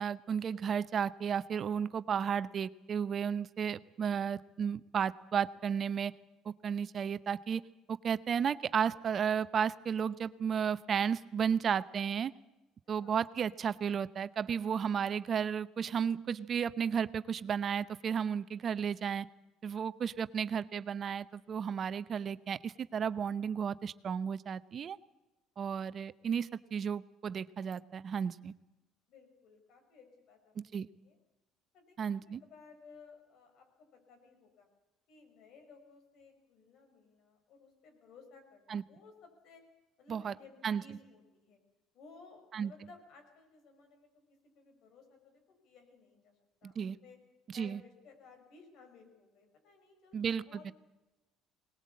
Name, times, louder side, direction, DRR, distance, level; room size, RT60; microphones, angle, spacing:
voice 1, 0.0-6.1 6.4-7.6 7.9-12.3 12.9-19.3 19.6-25.0 25.6-28.5 30.6-30.9 32.0-32.4 38.7-38.8 40.1-40.3 40.6-40.8 42.5-42.7 46.6-47.0 47.5-47.8 50.1-50.7, right 7 dB, 45° right, 15 dB, 0.7 m, -33 dB
voice 2, 12.8-13.2 29.1-31.2 31.7-34.7 35.1-39.6 40.0-41.6 41.9-44.1 44.4-46.3 46.6-47.2 47.5-50.7, left 4 dB, 65° left, 4 dB, 6.2 m, -58 dB
21.0 x 19.5 x 8.5 m, 1.0 s
supercardioid pair, 85°, 0 cm